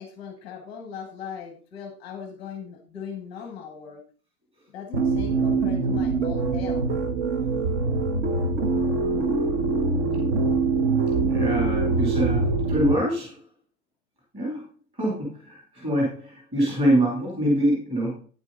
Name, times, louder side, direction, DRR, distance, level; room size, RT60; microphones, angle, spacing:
voice 1, 0.0-4.0 4.7-6.8, left 7 dB, 10° left, 4 dB, 0.9 m, -39 dB
sound 1, 4.9-12.9, right 3 dB, 50° right, 1.2 m, -24 dB
voice 2, 11.3-13.4 14.3-14.6 14.9-18.2, right 1 dB, 10° right, -4 dB, 2.8 m, -25 dB
9.5 x 8.1 x 3.8 m, 0.40 s
supercardioid pair, 180°, 45 cm